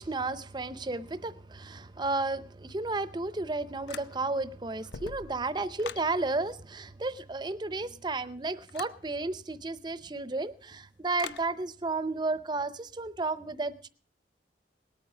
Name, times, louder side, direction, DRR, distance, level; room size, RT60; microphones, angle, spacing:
voice 1, 0.0-13.9, right 3 dB, 25° right, 0.6 m, -33 dB
sound 1, 3.9-4.4 4.8-6.1 8.7-9.0 11.2-11.5, left 6 dB, 70° left, 0.6 m, -42 dB
19.0 x 8.9 x 6.0 m
head